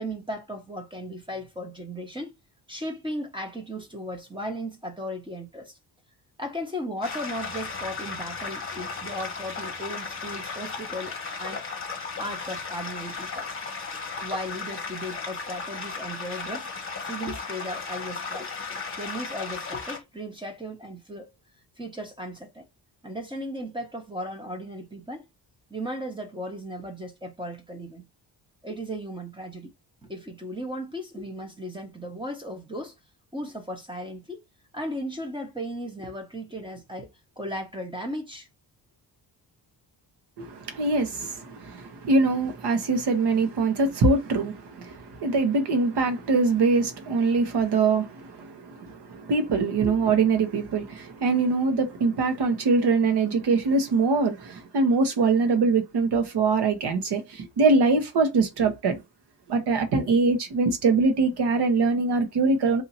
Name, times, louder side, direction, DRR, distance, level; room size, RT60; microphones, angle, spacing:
voice 1, 0.0-2.3 2.7-5.8 6.4-11.6 12.2-13.5 14.2-16.7 17.0-18.5 19.0-21.3 21.8-22.6 23.0-25.2 25.7-28.1 28.6-29.7 30.0-32.9 33.3-34.4 34.7-37.1 37.4-38.5, equal, 10° right, 1.0 m, -36 dB
sound 1, 7.0-20.0, left 4 dB, 30° left, 1.1 m, -35 dB
voice 2, 40.4-59.0 59.5-62.8, right 3 dB, 70° right, 1.1 m, -23 dB
2.7 x 2.7 x 4.0 m
wide cardioid pair, 145°, 42 cm